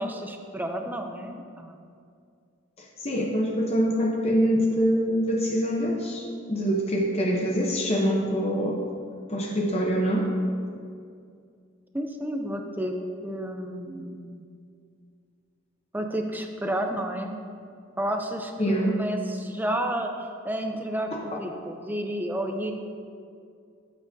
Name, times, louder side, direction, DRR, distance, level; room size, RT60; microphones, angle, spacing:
voice 1, 0.0-1.7 11.9-12.9 13.2-14.4 15.9-17.4 18.0-22.7, right 1 dB, 10° right, 4 dB, 0.5 m, -31 dB
voice 2, 2.8-8.8 9.3-10.3 18.6-19.0, equal, 30° left, -1 dB, 0.8 m, -25 dB
13.0 x 7.4 x 2.7 m, 2.3 s
head